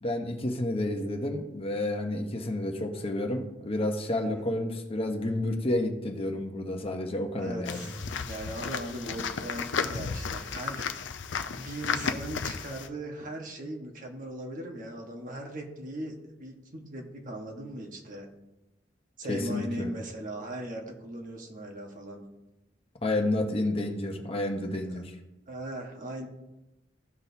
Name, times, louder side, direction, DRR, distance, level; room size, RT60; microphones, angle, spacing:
voice 1, 0.0-7.8 19.3-19.9 23.0-25.1, left 1 dB, 30° left, 3 dB, 0.9 m, -30 dB
voice 2, 7.4-8.0 8.2-11.0 11.5-18.3 19.2-22.2 24.9-25.0 25.5-26.3, right 1 dB, 45° right, 2 dB, 1.3 m, -39 dB
sound 1, 7.7-12.9, left 5 dB, 75° left, 0.5 m, -33 dB
15.0 x 6.3 x 2.7 m, 0.98 s
head